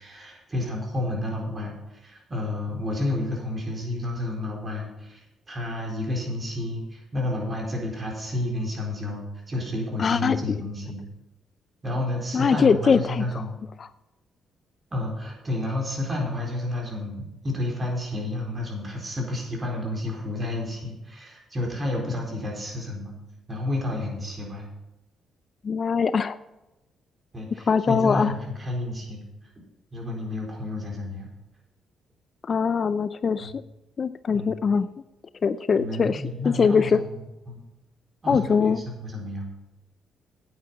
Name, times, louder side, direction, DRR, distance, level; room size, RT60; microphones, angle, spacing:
voice 1, 0.0-11.0 11.8-13.6 14.9-23.2 23.5-24.7 27.3-29.2 29.9-31.3 33.4-33.5 34.3-34.6 35.8-37.1 37.5-37.6 38.2-39.5, left 1 dB, 30° right, -1 dB, 4.2 m, -31 dB
voice 2, 10.0-10.6 12.3-13.2 25.6-26.4 27.7-28.3 32.5-33.6 34.0-34.9 35.4-36.2 36.6-37.0 38.3-38.8, left 5 dB, 45° left, 14 dB, 0.4 m, -22 dB
9.2 x 9.0 x 5.6 m, 0.98 s
cardioid pair, 90°, 0 cm